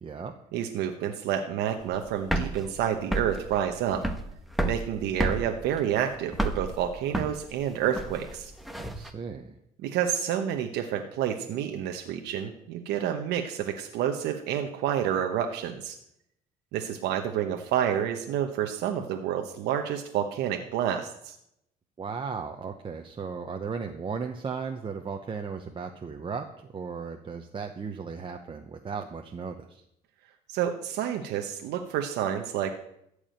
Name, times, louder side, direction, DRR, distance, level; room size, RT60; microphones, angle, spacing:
voice 1, 0.0-0.3 8.8-9.6 22.0-29.8, right 5 dB, 30° right, 3 dB, 1.0 m, -36 dB
voice 2, 0.5-4.0 4.6-8.5 9.8-16.0 16.7-21.4 30.5-32.7, right 9 dB, 85° right, 4 dB, 1.0 m, -29 dB
sound 1, 1.8-9.1, right 1 dB, ahead, 1.2 m, -31 dB
14.0 x 4.9 x 9.0 m, 0.78 s
cardioid pair, 110°, 17 cm